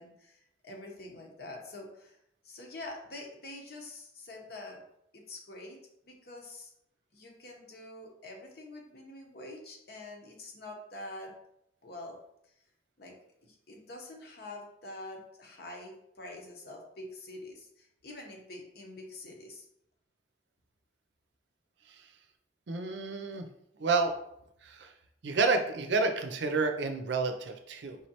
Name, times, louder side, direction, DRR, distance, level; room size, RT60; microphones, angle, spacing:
voice 1, 0.0-2.2 2.4-4.8 5.1-5.8 6.0-6.7 7.1-11.3 11.8-12.2 13.0-13.1 13.4-19.7, left 2 dB, 55° left, 1 dB, 0.9 m, -46 dB
voice 2, 22.7-23.5 23.8-24.1 24.6-24.9 25.2-28.0, right 3 dB, 70° right, 6 dB, 0.5 m, -30 dB
4.9 x 3.1 x 2.9 m, 0.77 s
head